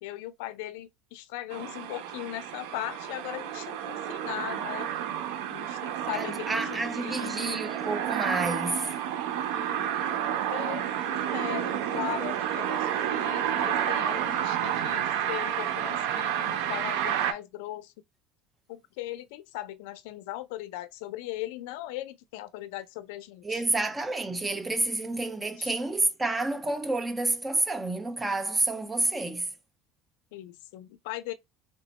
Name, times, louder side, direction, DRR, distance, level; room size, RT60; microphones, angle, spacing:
voice 1, 0.0-4.9 5.5-7.6 9.5-17.9 18.7-23.6 25.6-25.7 30.3-31.3, left 15 dB, 85° left, 0.4 m, -39 dB
sound 1, 1.5-17.3, right 10 dB, 85° right, 0.6 m, -30 dB
voice 2, 6.1-8.9 23.4-29.5, right 2 dB, 10° right, 0.5 m, -29 dB
3.3 x 2.1 x 4.0 m
cardioid pair, 160°, 0 cm